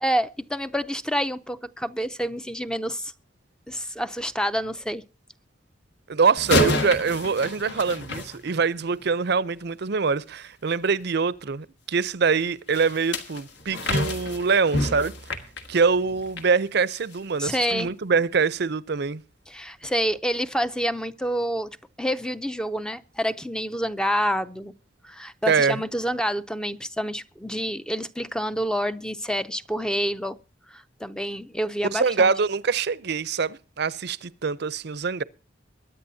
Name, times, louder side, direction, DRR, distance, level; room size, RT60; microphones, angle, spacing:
voice 1, 0.0-3.1 3.7-5.0 17.4-17.9 19.5-21.7 22.0-24.7 25.0-30.4 30.7-32.3, equal, 5° left, 0.5 m, -28 dB
voice 2, 6.1-15.1 15.7-19.2 25.5-25.8 31.9-35.2, right 5 dB, 60° right, 0.6 m, -24 dB
sound 1, 6.4-9.0 12.7-16.5 16.9-17.2 17.7-17.8, left 1 dB, 70° left, 1.9 m, -28 dB
22.5 x 10.0 x 2.7 m
head